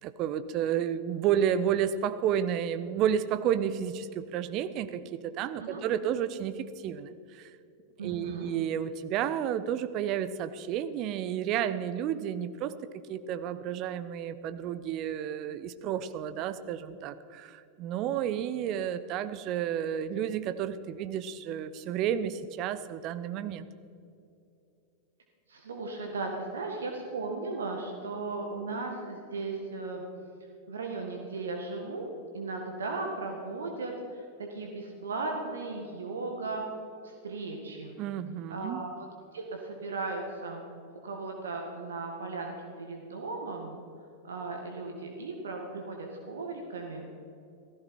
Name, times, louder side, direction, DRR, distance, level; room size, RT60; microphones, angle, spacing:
voice 1, 0.0-7.5 8.0-23.7 38.0-38.9, right 9 dB, 40° right, 13 dB, 0.7 m, -31 dB
voice 2, 8.0-8.5 25.5-30.0 30.7-36.6 37.0-38.0 38.5-38.9 39.3-40.6 40.9-43.8 44.2-47.1, right 3 dB, 65° right, 2 dB, 1.8 m, -36 dB
16.5 x 15.0 x 4.4 m, 2.7 s
figure-of-eight pair, 90°, 0 cm